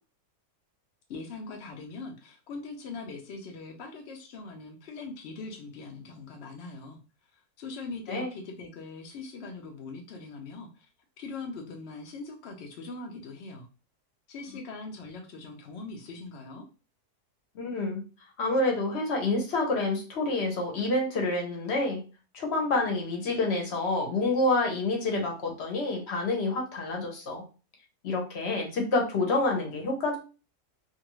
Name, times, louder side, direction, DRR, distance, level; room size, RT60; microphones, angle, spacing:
voice 1, 1.1-7.0 7.3-10.9 11.2-13.7 14.3-16.7, left 3 dB, 75° left, 2 dB, 0.5 m, -41 dB
voice 2, 17.5-18.0 18.4-22.0 22.3-27.4 28.0-30.2, left 2 dB, 50° left, 1 dB, 0.9 m, -28 dB
2.6 x 2.5 x 2.9 m, 0.34 s
omnidirectional pair, 1.7 m